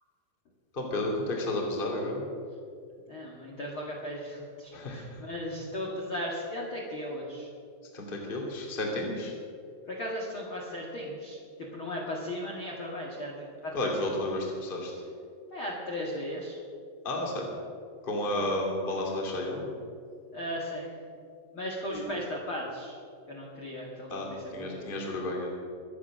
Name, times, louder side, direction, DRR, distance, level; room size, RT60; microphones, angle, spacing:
voice 1, 0.7-2.2 4.7-5.1 7.9-9.3 13.7-14.9 17.0-17.5 18.0-19.7 21.9-22.1 24.1-24.3 24.5-25.5, left 1 dB, 25° left, 0 dB, 1.1 m, -32 dB
voice 2, 3.1-7.5 9.9-14.1 15.5-16.6 18.3-18.5 20.3-20.9 21.5-23.0 23.3-24.9, left 1 dB, 70° left, -3 dB, 1.2 m, -37 dB
24.0 x 8.3 x 6.2 m, 2.3 s
omnidirectional pair, 5.5 m